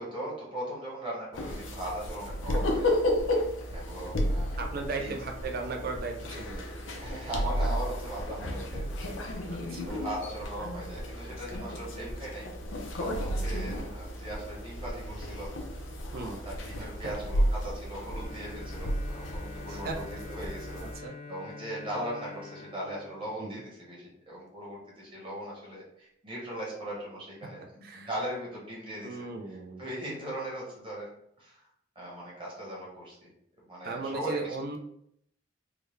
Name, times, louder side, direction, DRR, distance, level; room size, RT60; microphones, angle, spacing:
voice 1, 0.0-3.0 3.7-4.6 5.0-5.1 7.0-12.5 13.0-15.9 16.1-29.2 29.5-31.1 31.4-31.6 31.9-33.3 33.7-34.6, right 1 dB, 25° right, -5 dB, 1.3 m, -39 dB
Quietly playing cards, 1.3-20.9, equal, 80° left, 0.6 m, -33 dB
voice 2, 4.6-6.9 9.5-10.0 16.1-16.4 19.7-20.0 20.9-21.1 23.4-23.6 27.8-28.1 29.0-29.8 33.8-34.8, right 3 dB, 50° right, 3 dB, 0.5 m, -37 dB
Bowed string instrument, 18.0-24.0, left 4 dB, 30° left, 0.3 m, -47 dB
3.7 x 2.2 x 3.2 m, 0.72 s
head